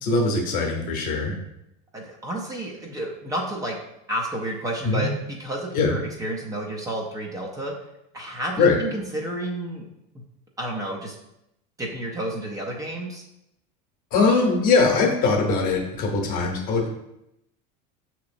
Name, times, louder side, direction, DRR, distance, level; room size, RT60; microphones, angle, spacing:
voice 1, 0.0-1.4 4.8-5.0 5.7-5.9 8.6-8.8 14.1-16.9, left 4 dB, 45° left, 1 dB, 0.9 m, -21 dB
voice 2, 1.9-3.8 4.1-7.7 8.1-9.8 10.6-11.2 11.8-13.2, right 1 dB, 15° right, -1 dB, 0.6 m, -31 dB
5.9 x 3.0 x 2.5 m, 0.84 s
supercardioid pair, 135°, 20 cm